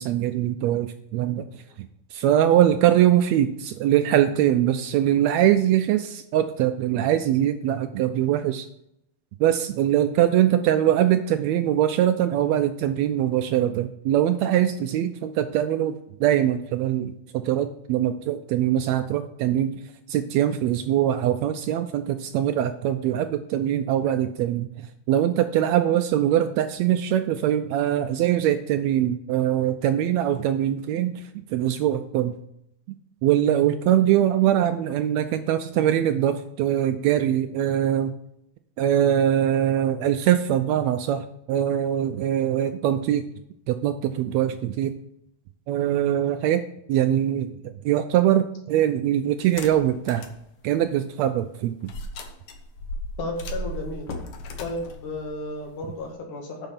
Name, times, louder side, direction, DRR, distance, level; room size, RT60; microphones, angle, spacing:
voice 1, 0.0-1.6 2.1-8.7 9.4-19.7 20.1-31.2 31.5-32.3 33.2-38.1 38.8-43.2 43.7-44.9 45.7-46.6 46.9-47.5 47.8-50.3 50.6-51.9, right 11 dB, 80° right, 10 dB, 1.6 m, -22 dB
sound 1, 49.4-50.4 50.8-50.9 51.9-56.1, left 1 dB, 60° left, 1.6 m, -36 dB
voice 2, 53.2-54.1 54.6-56.7, left 2 dB, 85° left, 1 dB, 3.3 m, -33 dB
9.1 x 5.5 x 5.8 m, 0.77 s
omnidirectional pair, 3.4 m